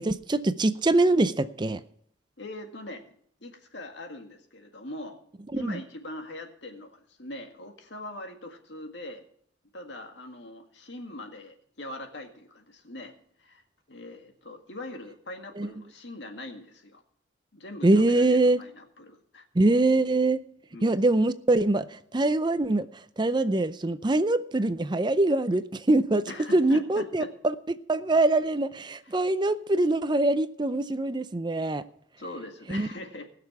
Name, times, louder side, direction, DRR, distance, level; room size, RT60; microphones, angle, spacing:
voice 1, 0.0-1.8 5.5-5.8 15.6-15.7 17.8-18.6 19.5-20.4 20.8-27.5 27.9-31.8 32.7-32.9, right 2 dB, 25° right, 0.5 m, -24 dB
voice 2, 2.4-3.1 3.4-5.2 5.5-9.2 9.7-13.1 13.4-13.6 13.9-17.0 17.5-19.5 20.7-20.9 26.3-27.3 32.2-33.3, left 1 dB, 70° left, 2.0 m, -42 dB
20.0 x 6.7 x 5.9 m
head